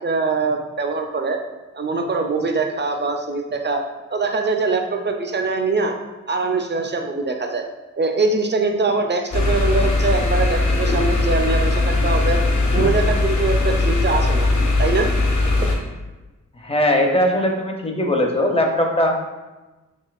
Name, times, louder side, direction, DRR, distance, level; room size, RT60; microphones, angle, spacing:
voice 1, 0.0-1.4 1.7-3.8 4.1-5.9 6.3-7.6 8.0-12.4 12.7-14.5 14.8-15.1 15.6-15.7, right 3 dB, 35° right, 4 dB, 0.4 m, -22 dB
sound 1, 9.3-15.8, left 2 dB, 65° left, 0.8 m, -19 dB
voice 2, 16.6-19.2, left 1 dB, 20° left, 2 dB, 0.5 m, -19 dB
5.3 x 2.8 x 2.3 m, 1.1 s
wide cardioid pair, 95°, 31 cm